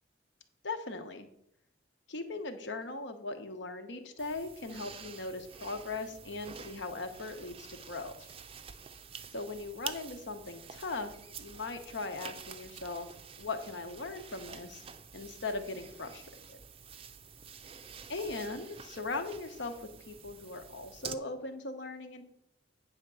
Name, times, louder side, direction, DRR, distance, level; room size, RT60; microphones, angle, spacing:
voice 1, 0.6-1.3 2.1-8.3 9.3-13.1 13.4-14.8 15.1-16.6 18.1-22.2, left 3 dB, 75° left, 7 dB, 1.1 m, -39 dB
sound 1, 4.2-21.1, right 6 dB, 30° right, 0.5 m, -48 dB
9.1 x 3.6 x 6.9 m, 0.73 s
head